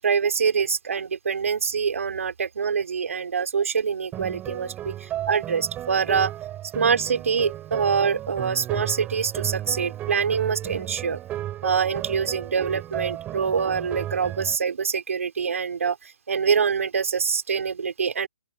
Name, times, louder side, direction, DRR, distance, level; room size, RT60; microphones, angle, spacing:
voice 1, 0.0-6.3 6.7-11.2 11.6-18.3, right 6 dB, 70° right, 5.4 m, -25 dB
sound 1, 4.1-14.6, right 13 dB, 20° right, 6.7 m, -34 dB
open air
hypercardioid pair, 145°, 8 cm